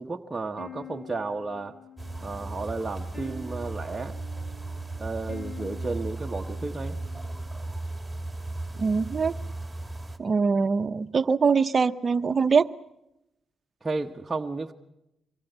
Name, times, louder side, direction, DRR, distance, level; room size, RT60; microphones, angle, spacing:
voice 1, 0.0-1.8 2.2-4.1 5.0-7.0 13.8-14.7, right 3 dB, 25° right, 1 dB, 1.2 m, -33 dB
sound 1, 0.6-7.7, left 4 dB, 35° left, 4.6 m, -48 dB
sound 2, 2.0-10.2, right 2 dB, 5° right, 2.7 m, -36 dB
voice 2, 8.8-9.3 10.2-12.7, right 5 dB, 45° right, 11 dB, 0.9 m, -23 dB
25.0 x 22.5 x 8.1 m, 0.89 s
cardioid pair, 75°, 0 cm